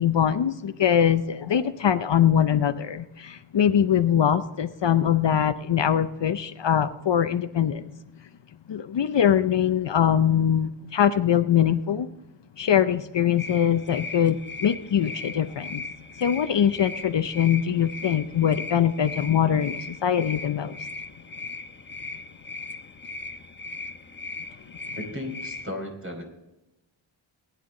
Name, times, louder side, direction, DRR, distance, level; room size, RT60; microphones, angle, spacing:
voice 1, 0.0-7.9 8.7-12.1 12.6-15.8 16.2-20.8, left 9 dB, 60° left, 0.7 m, -22 dB
sound 1, 13.4-25.7, left 3 dB, 20° left, 1.0 m, -38 dB
voice 2, 24.9-26.2, left 1 dB, 25° right, 4.8 m, -35 dB
19.5 x 10.0 x 3.8 m
wide cardioid pair, 65°, 50 cm